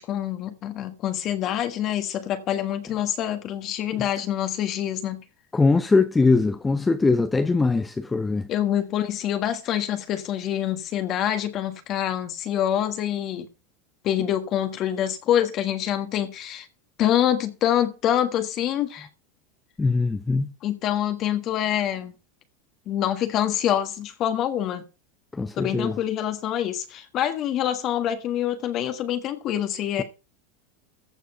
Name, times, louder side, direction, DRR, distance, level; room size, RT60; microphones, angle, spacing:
voice 1, 0.0-5.2 8.5-13.5 14.0-16.7 17.0-19.1 20.6-22.1 22.9-24.8 25.5-30.0, left 11 dB, 45° left, 1.6 m, -26 dB
voice 2, 5.5-8.5 19.8-20.5 25.3-26.0, left 3 dB, 15° left, 0.8 m, -21 dB
15.0 x 5.1 x 5.7 m
hypercardioid pair, 105°, 0 cm